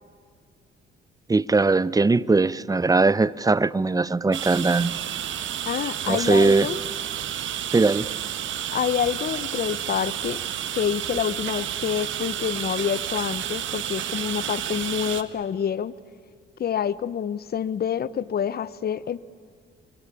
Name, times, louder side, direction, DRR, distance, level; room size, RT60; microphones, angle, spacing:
voice 1, 1.3-5.0 6.1-6.7 7.7-8.1, right 3 dB, 20° right, 20 dB, 0.7 m, -20 dB
sound 1, 4.3-15.2, right 10 dB, 75° right, 1.6 m, -31 dB
voice 2, 5.7-6.8 8.7-10.4 10.8-16.0 16.6-19.2, left 8 dB, 50° left, 18 dB, 1.0 m, -27 dB
29.5 x 23.5 x 8.5 m, 2.1 s
cardioid pair, 90°, 20 cm